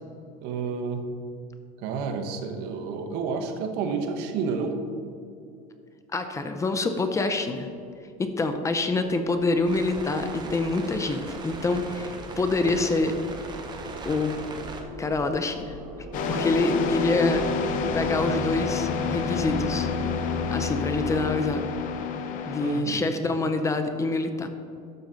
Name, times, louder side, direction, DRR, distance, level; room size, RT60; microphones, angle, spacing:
voice 1, 0.4-1.0 1.8-4.8 22.6-23.0, right 5 dB, 65° right, 5 dB, 1.1 m, -30 dB
voice 2, 6.1-7.7 8.2-13.1 14.0-14.4 15.0-15.8 16.3-19.9 20.5-21.6 22.5-24.5, left 3 dB, 15° left, 7 dB, 0.5 m, -26 dB
sound 1, 7.9-21.3, right 1 dB, 50° right, 1.9 m, -41 dB
sound 2, 9.6-14.8, right 3 dB, 25° right, 1.0 m, -39 dB
sound 3, 16.1-22.8, left 5 dB, 50° left, 0.8 m, -28 dB
12.0 x 6.9 x 3.8 m, 2.4 s
cardioid pair, 145°, 18 cm